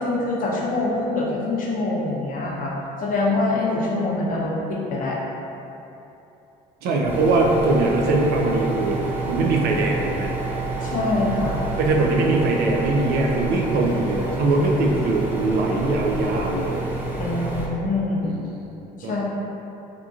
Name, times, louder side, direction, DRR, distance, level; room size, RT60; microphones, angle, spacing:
voice 1, 0.0-2.7 3.0-5.2 10.8-11.6 17.2-18.3 19.0-19.2, left 2 dB, 55° left, -3 dB, 0.5 m, -24 dB
voice 2, 6.8-9.0 9.3-10.3 11.8-16.8 18.2-19.2, right 2 dB, 70° right, 0 dB, 0.4 m, -22 dB
sound 1, 7.1-17.7, right 3 dB, 10° right, 0.4 m, -28 dB
2.9 x 2.5 x 2.3 m, 2.9 s
cardioid pair, 110°, 17 cm